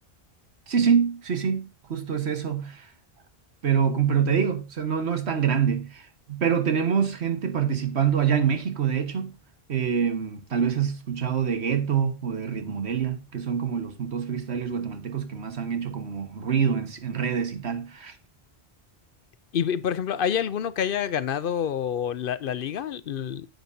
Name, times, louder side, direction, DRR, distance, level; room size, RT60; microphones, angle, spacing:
voice 1, 0.7-2.9 3.6-9.4 9.7-18.2, right 7 dB, 85° right, 1.6 m, -26 dB
voice 2, 19.5-23.5, left 8 dB, 65° left, 0.7 m, -27 dB
10.0 x 8.0 x 2.6 m
omnidirectional pair, 1.1 m